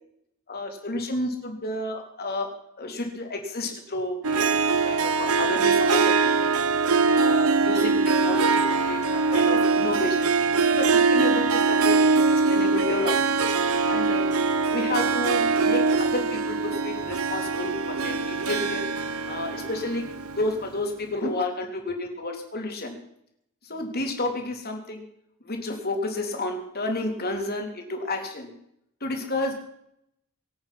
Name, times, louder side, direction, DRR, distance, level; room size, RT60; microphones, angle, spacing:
voice 1, 0.5-2.5 2.8-6.5 7.1-10.3 10.7-13.4 13.9-14.3 14.7-18.8 19.3-20.0 20.4-23.0 23.7-25.0 25.4-28.5 29.0-29.5, left 2 dB, 45° left, 3 dB, 3.4 m, -31 dB
Harp, 4.2-20.7, right 4 dB, 80° right, 1.0 m, -23 dB
24.5 x 8.8 x 5.9 m, 0.75 s
head